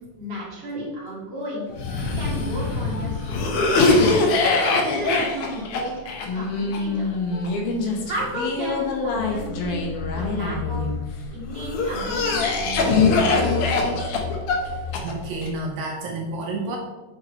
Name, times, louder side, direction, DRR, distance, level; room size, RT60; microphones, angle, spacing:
voice 1, 0.2-1.7 2.1-4.0 4.6-6.1 6.3-7.1 8.0-10.8 11.3-13.8, right 1 dB, 20° right, -7 dB, 2.2 m, -33 dB
Cough, 1.7-11.0 11.5-15.5, left 3 dB, 75° left, 1.3 m, -23 dB
sound 1, 9.1-15.7, left 6 dB, 90° left, 1.5 m, -34 dB
voice 2, 15.0-16.8, right 2 dB, 75° right, 0 dB, 2.2 m, -30 dB
7.9 x 6.0 x 2.9 m, 1.2 s
omnidirectional pair, 3.7 m